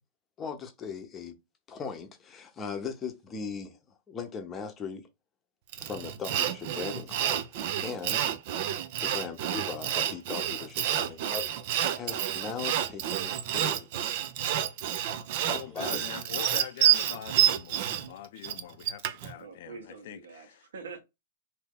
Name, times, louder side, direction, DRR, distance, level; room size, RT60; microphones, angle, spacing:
voice 1, 0.4-1.4 1.7-5.1 5.8-8.4 9.0-11.4 11.9-14.1 15.4-16.1, left 5 dB, 20° left, 0.8 m, -39 dB
Sawing, 5.7-19.3, right 11 dB, 55° right, 0.5 m, -29 dB
voice 2, 15.5-20.6, left 11 dB, 60° left, 0.4 m, -43 dB
voice 3, 19.3-21.0, right 5 dB, 80° right, 1.1 m, -45 dB
2.8 x 2.7 x 3.6 m
hypercardioid pair, 135°, 0 cm